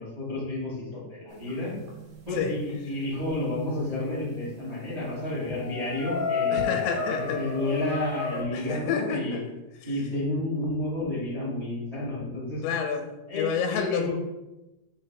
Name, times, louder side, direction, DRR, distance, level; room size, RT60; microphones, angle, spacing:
voice 1, 0.0-1.8 2.2-9.4 9.8-12.6 13.3-14.1, left 1 dB, 80° right, -7 dB, 0.3 m, -31 dB
sound 1, 1.4-3.2 4.6-4.7 5.0-5.1 5.4-8.4, left 5 dB, 55° right, 1.8 m, -32 dB
voice 2, 6.5-7.5 8.5-9.5 12.6-14.1, left 6 dB, 90° left, 5 dB, 2.9 m, -29 dB
6.8 x 3.3 x 4.4 m, 0.98 s
omnidirectional pair, 5.0 m